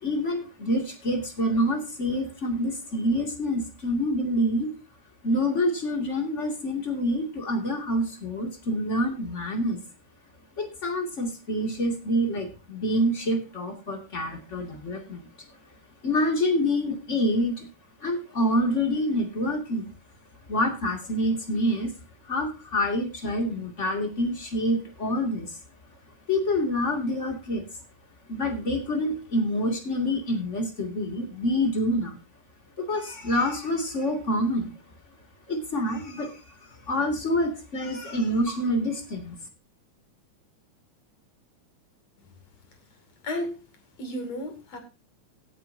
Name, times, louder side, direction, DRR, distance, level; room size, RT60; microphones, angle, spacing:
voice 1, 0.0-4.7 5.2-9.8 10.6-15.2 16.0-17.7 18.0-19.9 20.5-21.9 22.3-25.5 26.3-27.6 28.3-32.2 32.8-34.7 35.5-36.3 36.9-39.4, left 1 dB, 25° left, 3 dB, 2.4 m, -27 dB
voice 2, 43.2-43.6 44.0-44.8, left 1 dB, 60° left, 5 dB, 3.8 m, -32 dB
17.5 x 9.1 x 2.7 m, 0.29 s
omnidirectional pair, 3.4 m